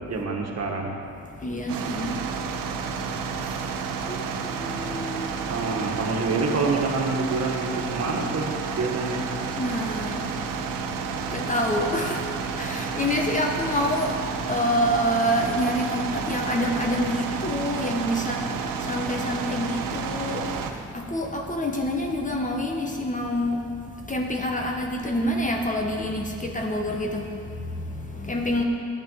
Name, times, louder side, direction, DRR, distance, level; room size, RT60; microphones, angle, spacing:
voice 1, 0.1-0.9 5.5-8.5 8.8-9.2, right 3 dB, 50° right, 0 dB, 1.8 m, -26 dB
voice 2, 1.4-3.7 4.0-5.4 9.6-28.6, equal, 25° left, 2 dB, 1.0 m, -28 dB
sound 1, 1.7-20.7, right 5 dB, 90° right, 0.8 m, -31 dB
10.5 x 8.9 x 5.7 m, 2.5 s
cardioid pair, 85°, 32 cm